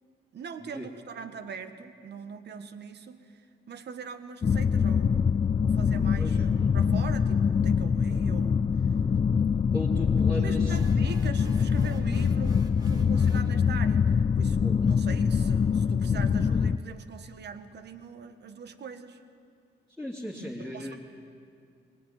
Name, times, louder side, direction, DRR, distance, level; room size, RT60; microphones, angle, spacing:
voice 1, 0.3-3.4 3.7-5.3 5.6-8.7 10.3-19.2 20.6-20.9, right 6 dB, 60° right, 9 dB, 1.6 m, -42 dB
sound 1, 4.4-16.8, left 6 dB, 30° left, 0.5 m, -24 dB
voice 2, 6.2-6.7 9.7-10.8 13.3-13.6 14.6-14.8 20.0-21.0, left 1 dB, ahead, -6 dB, 3.4 m, -37 dB
sound 2, 10.7-13.5, equal, 20° right, 3.9 m, -50 dB
22.0 x 19.5 x 9.4 m, 2.3 s
cardioid pair, 90°, 20 cm